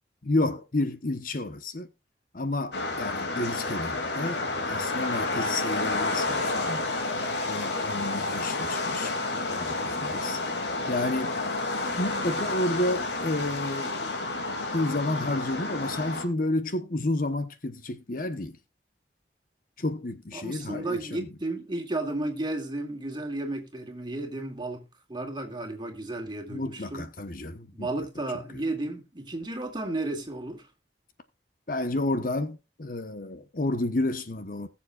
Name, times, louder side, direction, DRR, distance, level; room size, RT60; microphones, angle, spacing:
voice 1, 0.2-1.9 2.3-6.8 7.5-9.1 9.5-10.4 10.9-11.4 11.9-14.1 14.7-18.6 19.8-21.3 26.5-27.9 28.5-28.6 31.7-34.7, left 2 dB, 50° left, 1.0 m, -30 dB
sound 1, 2.7-16.2, left 2 dB, 70° left, 2.5 m, -30 dB
voice 2, 20.3-27.1 27.7-30.7, right 2 dB, 25° right, 2.3 m, -33 dB
20.0 x 7.2 x 2.4 m
head